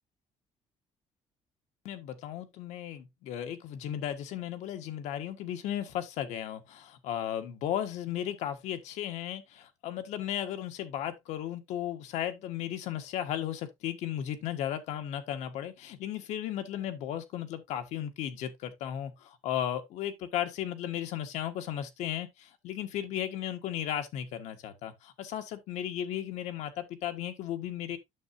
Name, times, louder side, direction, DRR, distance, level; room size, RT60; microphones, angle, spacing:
voice 1, 1.8-28.0, left 11 dB, 85° left, 1.4 m, -35 dB
9.2 x 6.8 x 2.6 m
cardioid pair, 155°, 12 cm